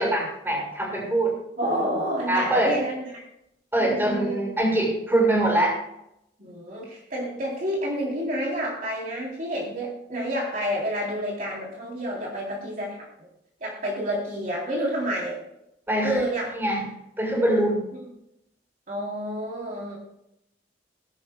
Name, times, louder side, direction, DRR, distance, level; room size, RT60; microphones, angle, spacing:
voice 1, 0.0-1.3 2.3-2.8 3.7-5.7 15.9-16.2 16.6-16.8 17.2-17.8, right 1 dB, 10° right, -2 dB, 5.7 m, -23 dB
voice 2, 1.6-3.2 3.8-4.4 6.4-13.3 13.6-15.4 16.0-16.5 18.9-20.0, equal, 50° right, -4 dB, 3.7 m, -29 dB
21.0 x 11.5 x 2.4 m, 0.80 s
head